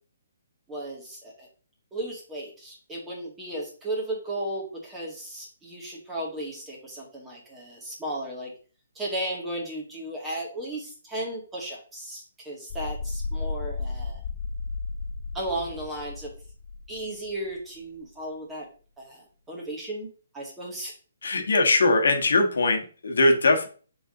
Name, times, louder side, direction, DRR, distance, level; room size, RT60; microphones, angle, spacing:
voice 1, 0.7-1.5 1.9-8.5 9.0-14.2 15.3-16.3 16.9-18.7 19.0-20.1 20.3-20.9, right 1 dB, 10° right, -3 dB, 2.1 m, -35 dB
sound 1, 12.7-17.3, left 3 dB, 40° left, 0.4 m, -34 dB
voice 2, 21.2-23.7, left 2 dB, 75° left, 4 dB, 1.6 m, -21 dB
6.7 x 4.0 x 3.9 m, 0.39 s
hypercardioid pair, 155°, 0 cm